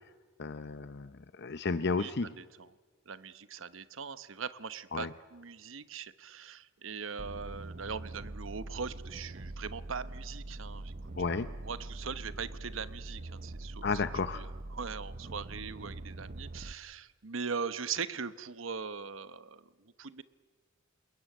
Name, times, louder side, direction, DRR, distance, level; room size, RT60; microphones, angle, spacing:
voice 1, 0.4-2.3 4.9-5.1 11.2-11.5 13.8-14.4, left 4 dB, 55° left, 12 dB, 0.7 m, -33 dB
voice 2, 1.8-2.7 3.1-13.8 14.3-20.2, right 5 dB, 75° right, 14 dB, 1.0 m, -41 dB
sound 1, 7.2-16.7, right 2 dB, 45° right, 0.8 m, -43 dB
28.5 x 21.0 x 9.4 m, 1.4 s
head